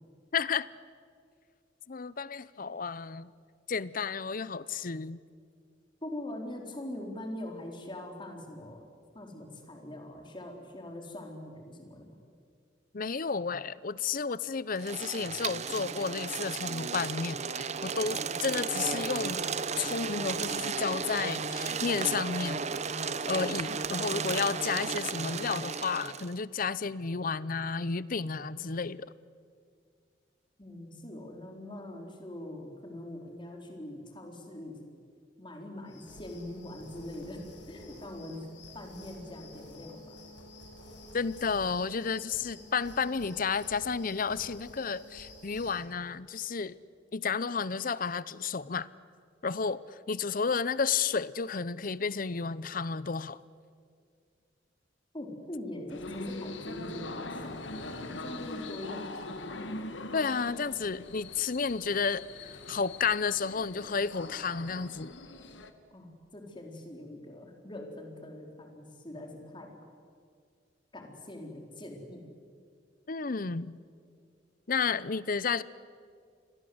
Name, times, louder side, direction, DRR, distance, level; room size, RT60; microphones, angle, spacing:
voice 1, 0.3-0.7 1.9-3.3 3.7-5.2 12.9-19.4 19.7-22.7 23.3-29.1 41.1-46.8 47.1-48.9 49.4-53.4 60.1-65.1 73.1-73.8 74.7-75.6, left 5 dB, 50° left, 18 dB, 0.7 m, -32 dB
voice 2, 6.0-12.2 30.6-34.8 35.4-38.5 38.7-40.1 55.1-59.7 65.9-69.7 70.9-72.2, left 1 dB, 25° left, 2 dB, 4.2 m, -43 dB
sound 1, 14.8-26.3, right 5 dB, 40° right, 0.9 m, -34 dB
sound 2, 35.9-45.8, left 1 dB, 70° left, 7.4 m, -50 dB
sound 3, 55.9-65.7, left 2 dB, 85° left, 1.8 m, -42 dB
29.0 x 23.0 x 8.0 m, 2.2 s
head